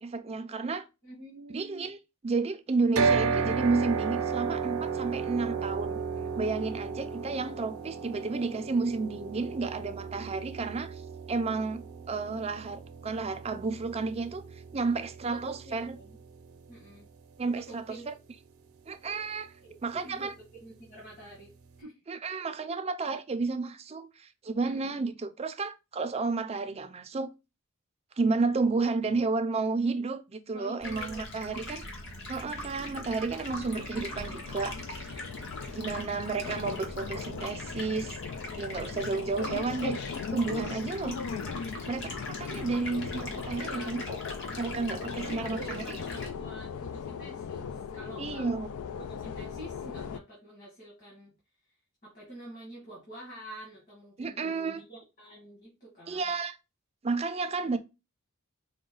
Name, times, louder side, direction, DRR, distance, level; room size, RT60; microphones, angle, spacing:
voice 1, 0.0-0.9 1.5-2.0 2.2-6.0 6.4-11.0 11.3-14.4 14.7-15.9 17.4-18.1 18.9-19.5 19.8-20.3 22.1-27.3 28.2-31.9 32.3-35.2 35.7-38.2 38.6-41.2 41.9-44.2 44.6-46.0 48.2-48.7 54.2-54.8 56.1-56.5 57.0-57.8, right 4 dB, 30° right, 0.4 m, -31 dB
voice 2, 1.0-1.9 15.2-16.2 16.7-17.1 17.5-18.1 19.6-21.5 21.8-22.0 24.6-25.0 30.5-31.6 43.6-44.0 45.1-48.5 49.0-51.3 52.0-56.3 57.6-57.8, right 2 dB, 40° left, 1.8 m, -47 dB
sound 1, 3.0-17.1, right 5 dB, 85° right, 0.6 m, -34 dB
Stream, 30.8-46.3, left 1 dB, 60° left, 1.3 m, -41 dB
sound 2, 33.5-50.2, left 6 dB, 85° left, 0.4 m, -39 dB
4.9 x 2.2 x 3.8 m
head